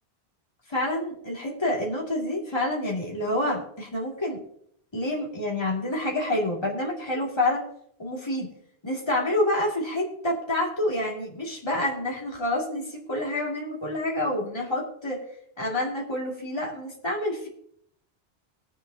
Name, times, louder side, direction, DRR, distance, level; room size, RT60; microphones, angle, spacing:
voice 1, 0.7-4.4 4.9-7.7 8.0-8.5 8.8-15.2 15.6-17.5, left 1 dB, 25° left, -3 dB, 2.4 m, -28 dB
20.0 x 7.5 x 2.8 m, 0.68 s
omnidirectional pair, 1.1 m